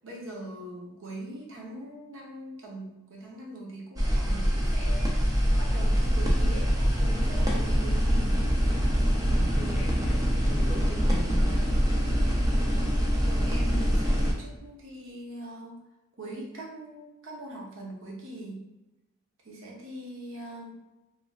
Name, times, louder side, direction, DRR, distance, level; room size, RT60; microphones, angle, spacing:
voice 1, 0.0-8.4 13.2-15.8 16.2-18.6 19.4-20.7, right 1 dB, 65° right, -2 dB, 0.7 m, -41 dB
sound 1, 4.0-14.3, equal, 15° right, 0.4 m, -24 dB
voice 2, 9.3-10.2 10.5-11.7, right 1 dB, 30° left, -4 dB, 0.7 m, -39 dB
3.0 x 2.4 x 2.3 m, 1.0 s
head